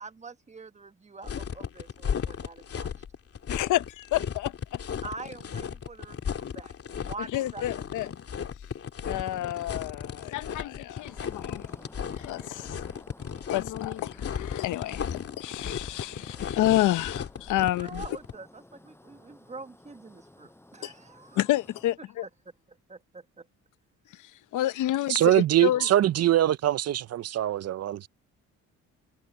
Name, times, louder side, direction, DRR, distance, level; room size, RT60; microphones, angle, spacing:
voice 1, 0.0-2.9 5.0-7.7 17.6-21.4 22.2-22.3 22.7-23.5, right 3 dB, 25° right, 1.5 m, -45 dB
sound 1, 1.2-18.3, left 7 dB, 50° left, 2.7 m, -35 dB
voice 2, 3.5-4.8 7.3-8.1 9.0-11.8 12.2-12.8 13.5-18.0 20.8-20.9 21.3-22.3 24.1-25.9, left 14 dB, 80° left, 0.9 m, -29 dB
sound 2, 11.0-22.0, left 1 dB, 10° left, 6.9 m, -54 dB
voice 3, 25.1-28.1, right 13 dB, 55° right, 0.6 m, -23 dB
cardioid pair, 90°, 30 cm